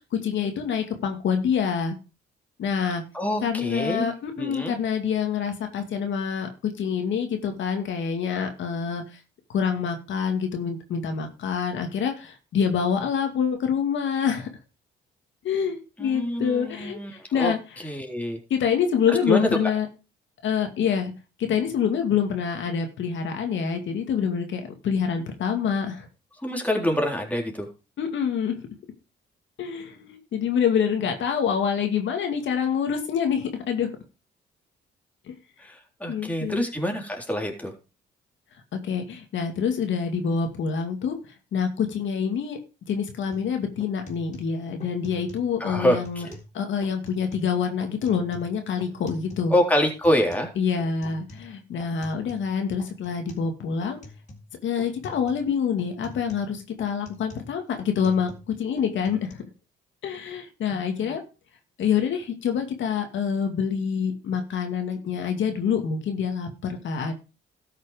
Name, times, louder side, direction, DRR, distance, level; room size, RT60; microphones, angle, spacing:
voice 1, 0.0-2.0 2.6-3.0 3.4-9.0 9.5-14.5 15.4-18.0 18.5-19.9 20.4-21.1 21.4-26.1 28.0-28.6 29.6-33.9 35.3-35.4 36.1-36.6 38.8-41.1 41.5-42.6 42.9-46.3 46.5-49.5 50.6-54.0 54.6-58.3 58.6-59.4 60.0-61.2 61.8-67.1, left 7 dB, 70° left, 5 dB, 2.3 m, -26 dB
voice 2, 3.1-4.1 4.4-4.7 16.0-17.5 17.8-18.4 19.1-19.5 26.4-27.7 35.6-37.7 45.6-46.4 49.5-50.5 60.7-61.2, equal, 5° left, 2 dB, 3.7 m, -26 dB
sound 1, 43.3-43.5 43.8-45.5 45.8-46.5 46.8-47.5 47.8-49.5 49.8-52.5 52.8-53.5 53.8-54.5 54.8-55.5 55.8-58.5 58.8-59.3, left 2 dB, 35° left, 3.8 m, -46 dB
13.0 x 6.6 x 5.1 m, 0.31 s
cardioid pair, 90°, 20 cm